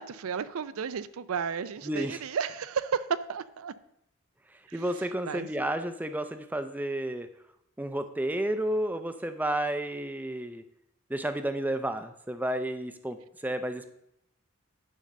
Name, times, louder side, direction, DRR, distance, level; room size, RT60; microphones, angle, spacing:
voice 1, 0.0-3.7 4.7-4.8 5.3-5.5, right 6 dB, 70° right, 15 dB, 0.4 m, -33 dB
voice 2, 1.8-2.2 4.7-7.3 7.8-10.6 11.1-13.2 13.4-13.9, right 1 dB, 10° right, 9 dB, 0.5 m, -31 dB
9.9 x 3.9 x 6.5 m, 0.79 s
head